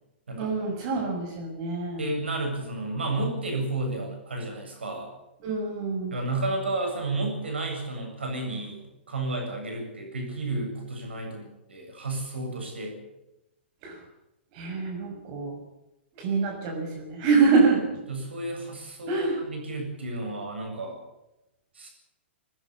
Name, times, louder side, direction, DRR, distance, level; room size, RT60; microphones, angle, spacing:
voice 1, 0.4-2.0 5.4-6.2 13.8-14.0 14.5-15.6 16.2-18.0 19.1-19.4, right 4 dB, 35° right, 2 dB, 6.2 m, -25 dB
voice 2, 2.0-5.1 6.1-13.0 18.1-20.9 21.7-21.9, right 2 dB, 70° right, 3 dB, 7.7 m, -32 dB
21.0 x 20.5 x 7.1 m, 0.93 s
figure-of-eight pair, 115°, 6 cm